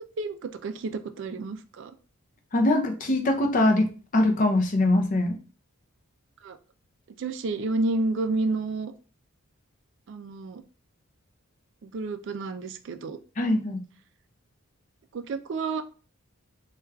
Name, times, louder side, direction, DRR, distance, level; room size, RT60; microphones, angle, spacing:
voice 1, 0.2-1.9 6.4-6.6 7.2-8.9 10.1-10.6 11.8-13.2 15.1-15.8, right 3 dB, 55° right, 10 dB, 0.3 m, -30 dB
voice 2, 2.5-5.4 13.4-13.8, left 1 dB, 35° left, 5 dB, 0.5 m, -23 dB
4.5 x 2.3 x 2.2 m, 0.37 s
head